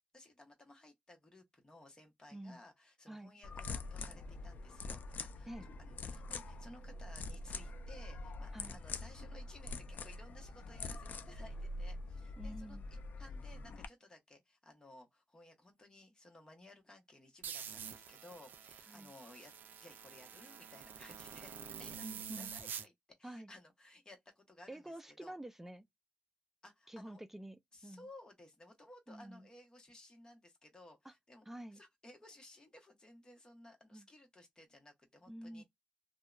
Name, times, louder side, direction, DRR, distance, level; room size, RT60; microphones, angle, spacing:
voice 1, 0.1-19.5 19.8-22.1 22.4-22.9 23.2-25.4 26.6-27.2 27.7-35.6, left 2 dB, 25° left, 1.0 m, -58 dB
sound 1, 3.4-13.9, left 3 dB, 65° left, 0.4 m, -45 dB
voice 2, 12.4-12.8 18.9-19.1 22.0-22.5 23.2-23.5 24.7-25.9 26.9-28.1 29.1-29.5 31.0-31.1 31.5-31.8 33.9-34.1 35.3-35.6, right 1 dB, 10° right, 0.3 m, -48 dB
sound 2, 17.4-22.9, right 7 dB, 85° right, 0.4 m, -47 dB
2.7 x 2.1 x 2.4 m
wide cardioid pair, 125°, 3 cm